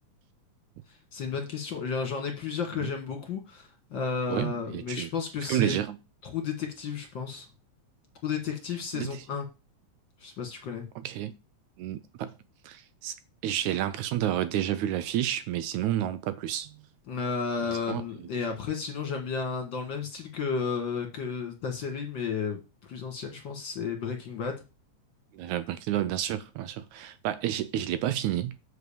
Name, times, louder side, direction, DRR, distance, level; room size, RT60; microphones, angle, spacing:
voice 1, 1.1-5.8 6.2-7.5 8.2-9.5 10.2-10.9 17.1-24.6, left 5 dB, 45° left, 2.0 m, -33 dB
voice 2, 4.3-5.1 5.4-6.0 8.9-9.2 11.0-11.3 11.8-12.3 12.6-13.1 13.4-16.7 17.7-18.0 25.3-28.6, right 12 dB, 75° right, 2.0 m, -30 dB
8.0 x 5.1 x 7.0 m
omnidirectional pair, 3.6 m